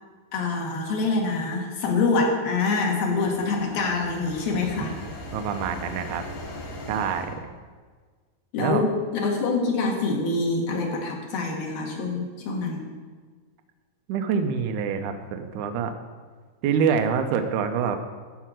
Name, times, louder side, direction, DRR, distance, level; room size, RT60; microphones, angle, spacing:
voice 1, 0.3-4.9 8.5-12.9, left 3 dB, 65° left, -1 dB, 3.5 m, -25 dB
sound 1, 2.7-7.4, left 2 dB, 80° left, 4.6 m, -39 dB
voice 2, 5.3-6.2 6.9-7.3 8.6-8.8 14.1-15.9 16.6-18.0, right 7 dB, 85° right, 6 dB, 1.7 m, -25 dB
14.5 x 5.8 x 7.6 m, 1.5 s
omnidirectional pair, 4.8 m